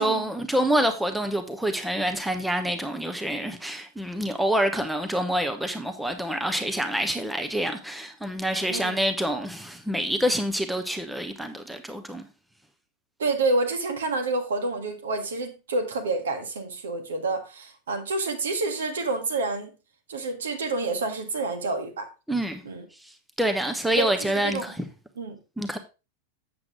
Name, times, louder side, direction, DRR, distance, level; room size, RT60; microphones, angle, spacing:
voice 1, 0.0-12.3 22.3-22.6 23.4-24.7 25.6-25.8, right 1 dB, 5° right, 0.9 m, -27 dB
voice 2, 8.7-9.0 13.2-19.7 20.1-22.1 22.6-22.8 24.0-24.7 25.2-25.4, right 3 dB, 65° right, 1.6 m, -28 dB
7.7 x 7.5 x 3.6 m
figure-of-eight pair, 90°, 0 cm